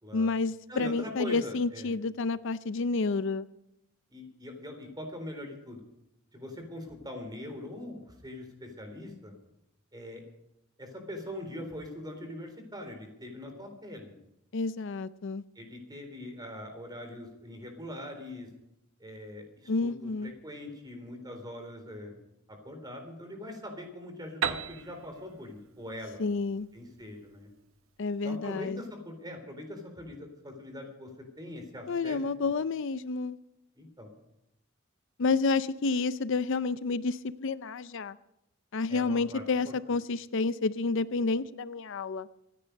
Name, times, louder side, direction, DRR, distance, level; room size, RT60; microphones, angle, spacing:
voice 1, 0.1-3.5 14.5-15.4 19.7-20.3 26.2-26.7 28.0-28.8 31.9-33.4 35.2-38.2 38.7-42.3, left 4 dB, 65° left, 15 dB, 0.5 m, -30 dB
voice 2, 0.7-2.0 4.1-5.8 6.3-9.3 9.9-10.2 10.8-14.2 15.6-18.5 19.0-22.1 22.5-26.2 26.7-27.5 28.2-32.5 33.8-34.1 38.9-39.7, left 1 dB, 20° right, 5 dB, 3.9 m, -42 dB
Piano, 24.4-28.1, right 7 dB, 85° right, 1.0 m, -37 dB
26.0 x 10.0 x 5.3 m, 0.84 s
head